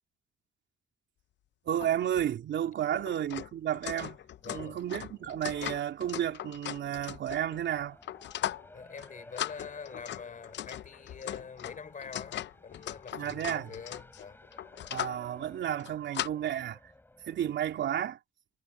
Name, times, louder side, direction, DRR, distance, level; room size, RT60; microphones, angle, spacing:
voice 1, 1.6-4.2 4.5-8.0 13.1-13.7 14.9-16.8 17.3-18.2, right 10 dB, 70° right, 3.0 m, -32 dB
sound 1, 1.8-1.9 2.2-2.3 2.9-7.6 8.0-8.7 9.0-9.1 9.4-15.2 15.7-16.3, left 12 dB, 65° left, 0.7 m, -39 dB
Race car auto racing, 3.9-18.0, left 1 dB, 10° left, 5.3 m, -57 dB
voice 2, 4.4-4.8 8.7-14.4, left 6 dB, 40° left, 5.6 m, -45 dB
cardioid pair, 90°, 20 cm